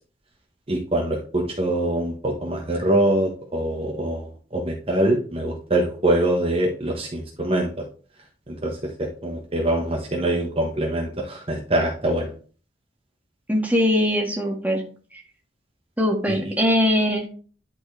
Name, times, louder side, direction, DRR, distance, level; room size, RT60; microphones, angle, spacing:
voice 1, 0.7-7.7 8.5-12.3 16.3-16.6, right 1 dB, 35° right, 0 dB, 1.2 m, -24 dB
voice 2, 13.5-14.8 16.0-17.3, equal, 10° right, 0 dB, 1.7 m, -21 dB
10.5 x 4.5 x 3.3 m, 0.40 s
head